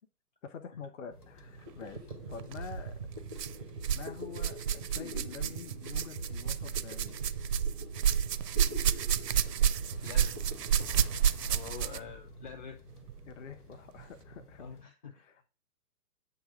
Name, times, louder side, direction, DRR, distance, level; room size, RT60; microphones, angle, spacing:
voice 1, 0.4-2.9 3.3-3.6 3.9-7.3 13.3-14.7 15.1-15.5, left 6 dB, 50° left, 0.9 m, -47 dB
sound 1, 1.1-14.8, left 2 dB, 70° left, 1.5 m, -52 dB
sound 2, 1.4-1.5 1.7-12.1, right 3 dB, 25° right, 0.4 m, -43 dB
sound 3, 2.4-2.6 3.3-4.1 4.3-12.1 13.1-13.2 14.0-14.1, right 8 dB, 80° right, 0.5 m, -30 dB
voice 2, 10.0-10.4 11.3-12.8 14.6-15.5, left 6 dB, 30° left, 0.5 m, -46 dB
8.0 x 2.9 x 5.0 m
figure-of-eight pair, 120°, 48 cm